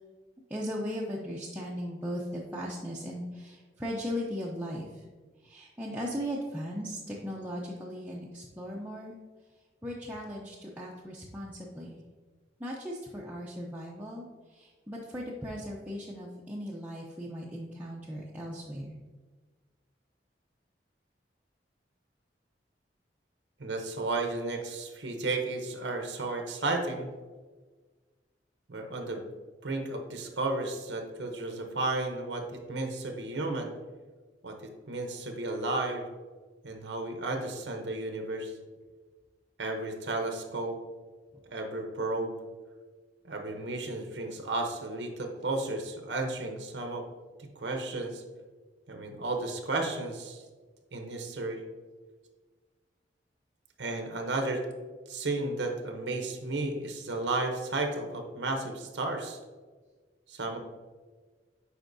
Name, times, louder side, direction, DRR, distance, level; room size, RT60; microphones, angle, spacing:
voice 1, 0.5-4.9 5.4-9.2 9.8-12.0 12.6-19.0, equal, 10° right, -4 dB, 0.6 m, -37 dB
voice 2, 23.6-27.1 28.7-29.3 29.6-33.7 34.4-34.5 34.9-36.0 36.6-38.5 39.6-40.8 41.5-42.4 43.2-47.0 47.6-48.2 48.9-50.4 50.9-51.6 53.8-54.6 55.1-59.4 60.3-60.6, right 2 dB, 90° right, 4 dB, 0.8 m, -33 dB
8.0 x 5.0 x 2.6 m, 1.4 s
head